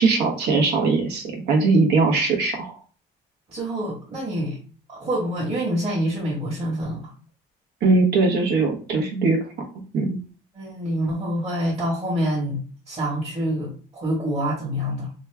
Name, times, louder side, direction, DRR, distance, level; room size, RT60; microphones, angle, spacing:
voice 1, 0.0-2.7 7.8-9.4 9.9-10.2, right 3 dB, 80° right, 2 dB, 1.1 m, -20 dB
voice 2, 3.5-4.6 4.9-7.0 10.5-12.6 12.9-15.1, equal, 35° right, -6 dB, 1.4 m, -26 dB
3.0 x 2.4 x 3.3 m, 0.39 s
cardioid pair, 110°, 17 cm